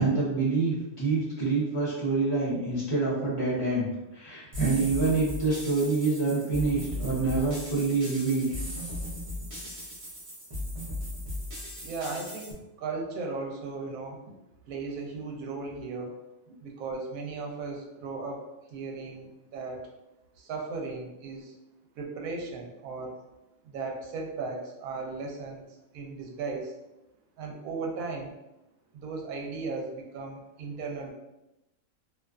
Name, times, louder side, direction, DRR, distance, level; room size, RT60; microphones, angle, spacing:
voice 1, 0.0-8.5, right 3 dB, 30° left, -7 dB, 0.7 m, -26 dB
sound 1, 4.5-12.5, left 1 dB, 40° right, 0.5 m, -37 dB
voice 2, 11.8-14.2 14.7-16.1 16.6-18.4 18.7-19.9 20.4-21.5 22.0-23.2 23.7-25.6 25.9-26.7 27.4-28.3 28.9-31.1, right 4 dB, 85° right, 1 dB, 1.0 m, -36 dB
2.4 x 2.4 x 2.3 m, 0.93 s
omnidirectional pair, 1.4 m